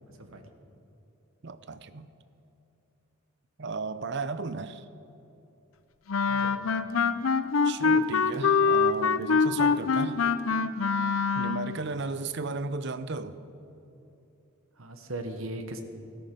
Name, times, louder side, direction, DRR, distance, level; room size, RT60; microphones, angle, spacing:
voice 1, 0.1-0.5 6.3-6.7 11.8-11.9 14.7-15.8, right 1 dB, 75° right, 6 dB, 1.2 m, -39 dB
voice 2, 1.4-2.1 3.6-4.9 7.6-10.2 11.3-13.4, right 3 dB, 55° right, 12 dB, 0.6 m, -35 dB
Wind instrument woodwind instrument, 6.1-11.8, left 5 dB, 75° left, 0.6 m, -24 dB
14.0 x 13.5 x 5.3 m, 2.9 s
head